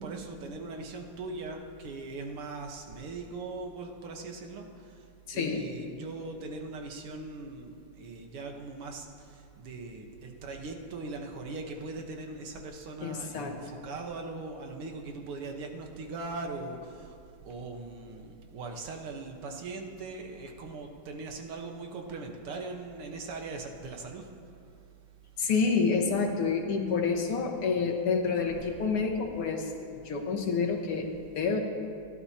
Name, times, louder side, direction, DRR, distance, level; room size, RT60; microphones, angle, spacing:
voice 1, 0.0-5.0 5.3-17.2 17.4-24.3, right 3 dB, 80° right, 2 dB, 2.2 m, -40 dB
voice 2, 5.3-5.7 13.0-13.6 25.4-31.6, left 5 dB, 85° left, 2 dB, 2.3 m, -28 dB
29.5 x 12.0 x 2.9 m, 2.4 s
omnidirectional pair, 2.4 m